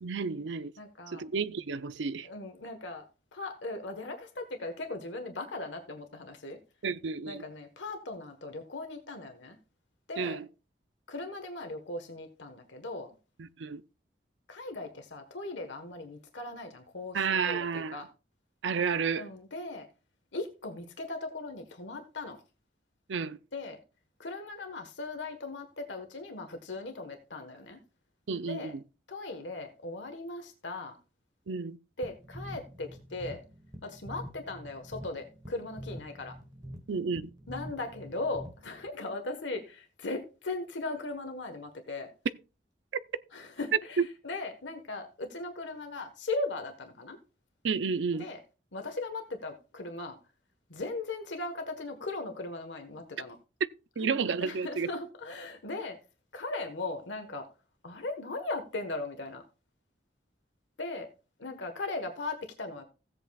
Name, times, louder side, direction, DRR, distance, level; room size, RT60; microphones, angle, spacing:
voice 1, 0.0-0.7 1.1-2.3 6.8-7.4 10.2-10.5 13.4-13.8 17.1-18.0 18.6-19.3 23.1-23.4 28.3-28.7 31.5-31.8 36.9-37.2 47.6-48.3 54.0-54.9, right 5 dB, 85° right, 0.5 m, -31 dB
voice 2, 0.8-1.2 2.2-3.0 3.3-6.6 7.3-9.6 10.1-10.4 11.1-13.1 14.5-18.1 19.2-19.9 20.3-22.4 23.5-23.8 24.2-27.8 28.5-28.8 29.1-30.9 32.0-33.4 33.8-36.3 37.5-42.1 43.3-47.2 48.1-48.4 48.7-50.2 50.7-53.4 54.0-56.0 56.3-57.5 57.8-59.4 60.8-61.1 61.4-62.8, left 2 dB, 85° left, 1.3 m, -38 dB
sound 1, 32.0-38.9, equal, 20° right, 1.2 m, -45 dB
16.0 x 8.0 x 2.3 m
head